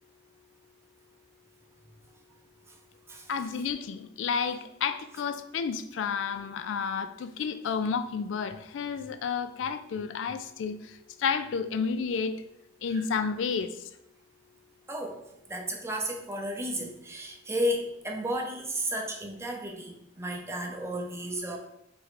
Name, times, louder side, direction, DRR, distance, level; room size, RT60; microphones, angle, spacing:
voice 1, 3.3-10.8 11.2-12.4 12.8-13.7, left 6 dB, 85° left, 10 dB, 0.3 m, -31 dB
voice 2, 14.9-15.2 15.5-21.6, equal, 15° right, 2 dB, 0.6 m, -33 dB
3.5 x 3.1 x 4.8 m, 0.80 s
head